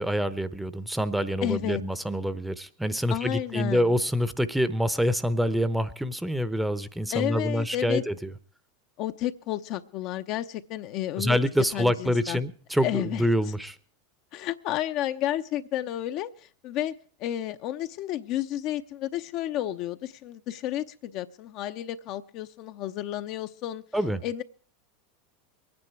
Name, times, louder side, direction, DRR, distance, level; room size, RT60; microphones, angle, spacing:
voice 1, 0.0-8.3 11.2-13.8 23.9-24.2, equal, 5° right, 15 dB, 0.9 m, -26 dB
voice 2, 1.4-1.8 3.1-3.9 7.1-8.0 9.0-11.4 11.7-12.4 12.8-13.3 14.3-16.3 16.6-16.9 17.2-23.8 24.2-24.4, left 13 dB, 50° left, 9 dB, 0.8 m, -31 dB
23.5 x 9.7 x 4.7 m, 0.43 s
hypercardioid pair, 85°, 0 cm